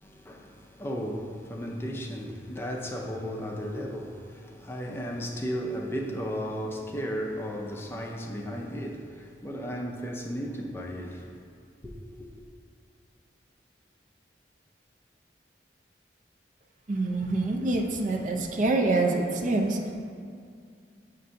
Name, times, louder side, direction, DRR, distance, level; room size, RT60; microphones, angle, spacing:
voice 1, 0.0-11.4 11.8-11.9, equal, 15° left, 0.5 m, -35 dB
voice 2, 16.9-19.9, right 2 dB, 45° right, 0.5 m, -26 dB
7.6 x 2.6 x 5.5 m
head